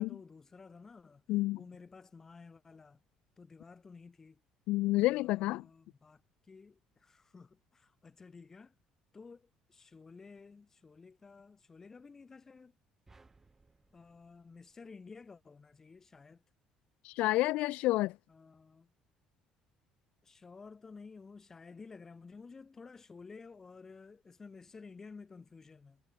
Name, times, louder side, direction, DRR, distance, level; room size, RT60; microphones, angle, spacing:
voice 1, 0.0-1.2 1.5-3.0 3.4-4.4 5.1-8.7 9.1-12.8 13.9-16.4 18.3-18.9 20.2-26.0, left 4 dB, 20° left, 6.7 m, -53 dB
voice 2, 1.3-1.6 4.7-5.6 17.0-18.1, left 18 dB, 80° left, 0.3 m, -29 dB
sound 1, 13.1-15.5, right 3 dB, 15° right, 4.8 m, -65 dB
cardioid pair, 140°, 2 cm